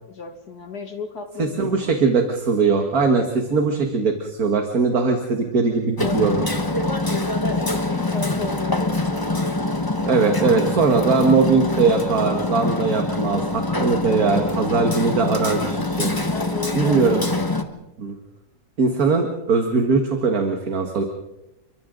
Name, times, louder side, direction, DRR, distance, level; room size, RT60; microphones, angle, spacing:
voice 1, 0.0-1.9 6.0-6.3 7.6-10.7 16.3-17.2, left 4 dB, 60° left, 5 dB, 2.6 m, -35 dB
voice 2, 1.4-6.4 10.0-16.3 16.7-17.2 18.0-18.1 18.8-21.0, right 4 dB, 55° right, 4 dB, 2.2 m, -20 dB
Hammer, 6.0-17.6, left 2 dB, 15° left, 1.1 m, -24 dB
29.5 x 24.0 x 3.9 m, 0.91 s
omnidirectional pair, 2.0 m